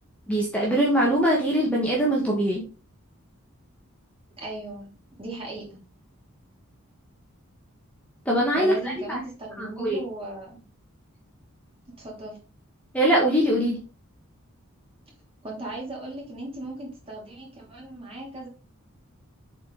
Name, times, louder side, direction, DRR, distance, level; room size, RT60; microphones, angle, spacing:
voice 1, 0.3-2.6 8.2-9.2 9.6-10.0 12.9-13.8, right 1 dB, 5° left, -3 dB, 1.4 m, -22 dB
voice 2, 4.4-4.9 5.2-5.8 8.5-10.6 12.0-12.4 15.4-18.5, right 2 dB, 25° right, -2 dB, 2.9 m, -37 dB
7.6 x 4.5 x 3.9 m, 0.35 s
head